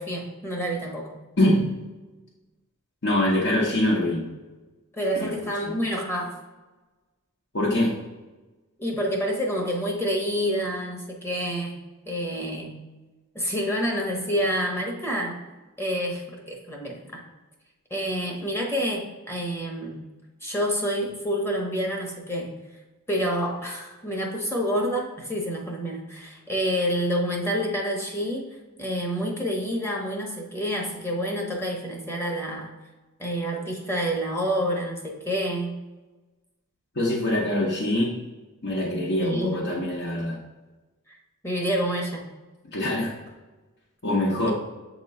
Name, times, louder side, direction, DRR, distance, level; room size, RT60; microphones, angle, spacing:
voice 1, 0.0-1.2 4.9-6.4 8.8-11.7 12.1-12.8 13.3-15.4 15.8-17.2 17.9-20.0 20.4-22.5 23.1-32.7 33.2-35.8 39.2-39.6 41.4-42.3, equal, 10° left, -1 dB, 0.9 m, -28 dB
voice 2, 1.4-1.7 3.0-4.3 5.1-5.7 7.5-7.9 37.0-38.1 38.6-40.4 42.7-43.1 44.0-44.5, left 1 dB, 55° left, -5 dB, 0.9 m, -24 dB
7.5 x 3.0 x 4.2 m, 1.2 s
head